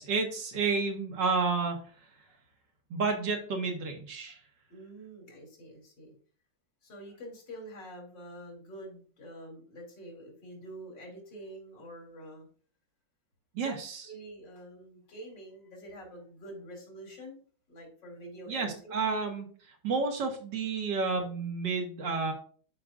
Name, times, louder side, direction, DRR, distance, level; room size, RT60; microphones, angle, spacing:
voice 1, 0.0-1.8 2.9-4.4 13.5-14.1 18.5-19.5 19.8-22.3, right 4 dB, 90° right, 2 dB, 2.2 m, -30 dB
voice 2, 4.7-6.1 6.8-12.5 13.6-13.8 14.0-17.4 17.7-19.0, right 1 dB, 90° left, -1 dB, 3.4 m, -46 dB
12.0 x 5.0 x 2.5 m, 0.43 s
omnidirectional pair, 1.9 m